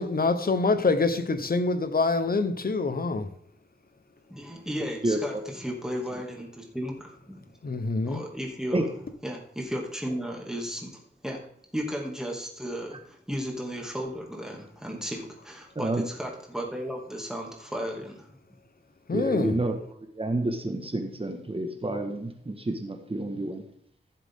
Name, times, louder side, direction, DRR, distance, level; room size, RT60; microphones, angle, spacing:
voice 1, 0.0-3.3 7.6-8.2 19.1-19.6, left 3 dB, 50° left, 1.1 m, -25 dB
voice 2, 4.3-7.5 8.1-8.9 9.2-18.4, equal, 5° right, 2.5 m, -35 dB
voice 3, 19.1-23.6, right 2 dB, 30° right, 1.6 m, -29 dB
15.0 x 7.5 x 3.8 m
wide cardioid pair, 100°, 20 cm